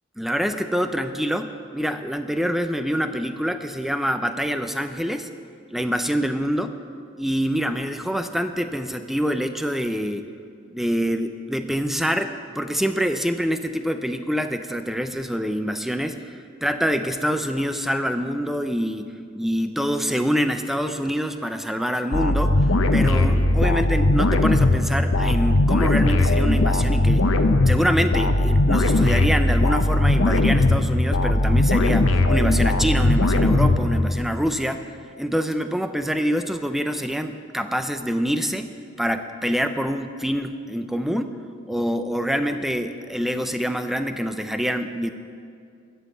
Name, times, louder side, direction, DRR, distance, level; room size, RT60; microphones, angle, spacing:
voice 1, 0.2-5.3 5.7-6.7 7.2-10.3 10.7-27.3 27.7-34.9 35.2-38.7 39.0-41.3 41.7-45.1, equal, ahead, 8 dB, 0.5 m, -25 dB
sound 1, 22.1-34.4, left 2 dB, 80° left, 0.8 m, -19 dB
14.0 x 5.6 x 8.2 m, 2.4 s
head